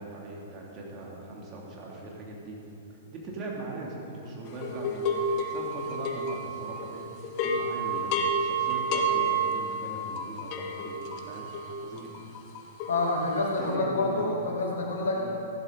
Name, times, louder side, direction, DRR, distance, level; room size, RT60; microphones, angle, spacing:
voice 1, 0.0-2.6 2.9-11.5 11.8-12.1 13.6-14.4 15.1-15.3, right 2 dB, 35° right, -3 dB, 2.9 m, -40 dB
sound 1, 4.6-6.9 7.2-13.6, right 2 dB, 40° left, 1.2 m, -30 dB
voice 2, 12.9-15.3, left 2 dB, 70° left, -1 dB, 2.3 m, -28 dB
14.5 x 11.5 x 4.1 m, 2.9 s
figure-of-eight pair, 110°, 0 cm